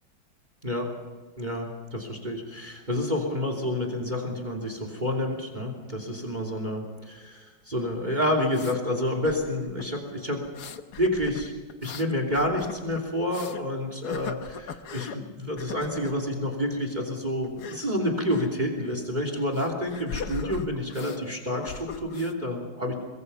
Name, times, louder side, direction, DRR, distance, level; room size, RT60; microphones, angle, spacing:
voice 1, 1.4-10.4 11.0-11.5 11.8-22.9, left 1 dB, 20° right, 4 dB, 3.0 m, -29 dB
sound 1, 7.9-8.8 9.2-9.9 10.4-13.6 14.0-15.2 15.6-16.2 17.4-17.8 18.3-18.5 18.8-19.0 19.5-21.2 21.5-22.3, left 7 dB, 60° left, 1.5 m, -39 dB
23.5 x 22.5 x 5.6 m, 1.4 s
omnidirectional pair, 2.2 m